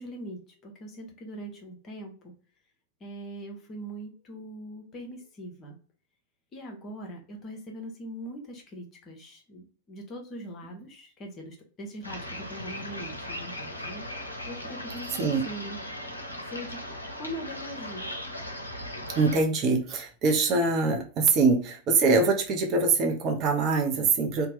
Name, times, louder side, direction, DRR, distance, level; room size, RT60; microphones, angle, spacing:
voice 1, 0.0-2.3 3.0-5.8 6.5-14.1 14.5-15.8 16.5-16.8 17.1-18.1, equal, 30° left, 3 dB, 0.8 m, -41 dB
sound 1, 12.0-19.4, left 1 dB, 85° left, 0.5 m, -38 dB
voice 2, 19.2-24.5, right 4 dB, 35° right, 2 dB, 0.6 m, -24 dB
2.8 x 2.2 x 3.1 m, 0.39 s
figure-of-eight pair, 90°, 0 cm